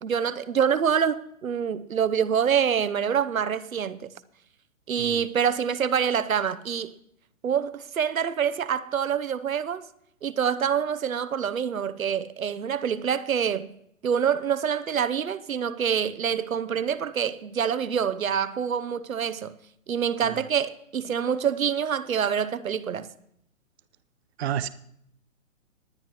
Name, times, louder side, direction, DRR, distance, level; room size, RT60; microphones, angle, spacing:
voice 1, 0.0-4.1 4.9-6.9 7.4-9.9 10.2-13.7 14.0-19.5 19.9-23.1, right 8 dB, 80° right, 0.9 m, -26 dB
voice 2, 5.0-5.3 20.2-20.4 24.4-24.7, right 9 dB, 50° right, 0.7 m, -30 dB
19.5 x 10.0 x 3.0 m
hypercardioid pair, 135°, 40 cm